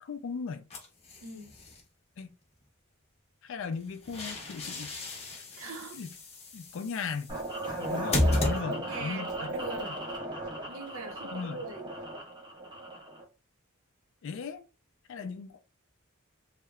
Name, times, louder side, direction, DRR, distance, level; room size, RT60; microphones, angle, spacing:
voice 1, 0.0-0.6 2.2-2.3 3.4-4.9 5.9-6.1 6.5-7.3 7.8-9.5 11.3-11.6 14.2-14.6 15.1-15.6, left 5 dB, 60° left, 0.3 m, -37 dB
sound 1, 0.7-1.8 3.7-9.1, left 1 dB, 30° left, 0.7 m, -34 dB
voice 2, 1.2-1.5 5.6-6.0 8.7-10.0 10.6-11.9, right 3 dB, 70° right, 0.6 m, -41 dB
sound 2, 7.3-13.2, right 1 dB, 20° right, 0.5 m, -37 dB
2.8 x 2.1 x 2.3 m
head